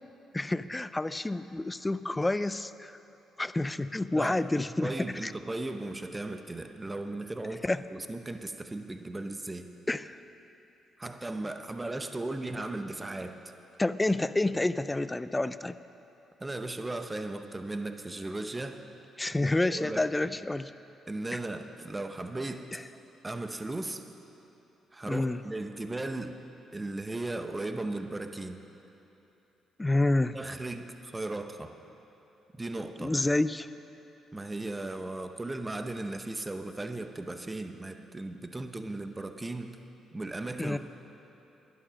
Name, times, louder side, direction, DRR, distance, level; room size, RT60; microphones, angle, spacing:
voice 1, 0.3-3.0 3.4-5.3 7.6-7.8 9.9-10.2 13.8-15.8 19.2-20.7 22.7-22.8 25.1-25.4 29.8-30.4 33.0-33.7 40.6-40.8, left 2 dB, 15° left, 14 dB, 0.4 m, -29 dB
voice 2, 4.1-7.6 7.9-9.7 11.0-13.5 16.4-18.8 19.3-20.4 21.1-22.6 23.2-24.0 24.9-26.3 26.7-28.6 30.3-31.7 32.5-33.1 34.3-39.8 40.1-40.8, right 2 dB, 20° right, 7 dB, 0.8 m, -37 dB
11.5 x 11.0 x 6.4 m, 3.0 s
cardioid pair, 90°, 0 cm